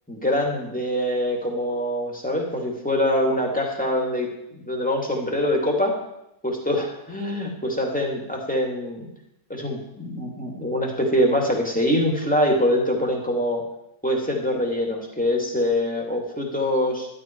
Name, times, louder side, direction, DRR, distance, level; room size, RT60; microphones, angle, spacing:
voice 1, 0.1-6.0 6.4-9.1 9.5-13.6 14.0-17.1, left 1 dB, 5° left, 0 dB, 2.3 m, -24 dB
12.0 x 12.0 x 4.6 m, 0.85 s
omnidirectional pair, 1.7 m